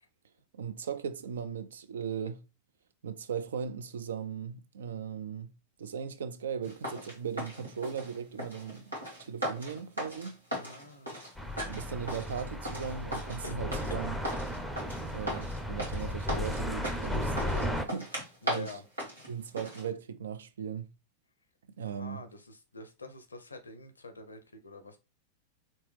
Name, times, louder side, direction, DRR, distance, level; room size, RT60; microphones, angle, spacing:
voice 1, 0.5-2.4 3.0-5.5 5.8-8.9 9.2-10.4 11.6-14.2 15.1-18.8 19.3-20.9 21.8-22.2, right 7 dB, 65° right, 0.4 m, -38 dB
sound 1, 6.6-19.9, equal, 85° right, 1.6 m, -38 dB
voice 2, 10.6-11.1 13.4-13.6 18.4-18.8 21.8-25.0, left 3 dB, 75° left, 0.6 m, -46 dB
sound 2, 11.4-17.9, left 1 dB, ahead, 0.5 m, -35 dB
3.1 x 2.9 x 3.2 m
figure-of-eight pair, 90°, 0 cm